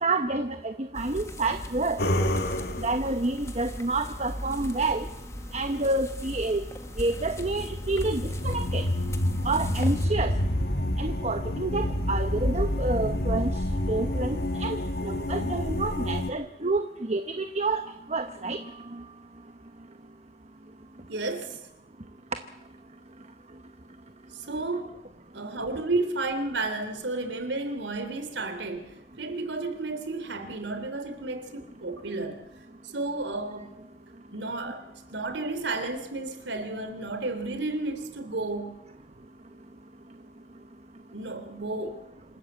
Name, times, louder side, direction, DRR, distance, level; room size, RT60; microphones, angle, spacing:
voice 1, 0.0-2.0 2.8-5.1 5.5-6.6 7.0-8.9 9.4-10.3 11.0-13.5 13.9-14.8 15.0-17.8 18.1-18.6, right 2 dB, 35° right, 8 dB, 1.0 m, -28 dB
sound 1, 0.9-10.1, left 1 dB, 15° left, 1.5 m, -39 dB
sound 2, 2.0-3.1 6.9-16.3, left 1 dB, 60° left, 2.0 m, -28 dB
voice 2, 21.1-21.6 24.3-24.9 25.3-32.5 32.8-33.8 34.3-34.8 35.1-38.8 41.1-42.0, right 2 dB, 85° right, 9 dB, 3.2 m, -32 dB
27.0 x 13.0 x 8.2 m, 0.89 s
head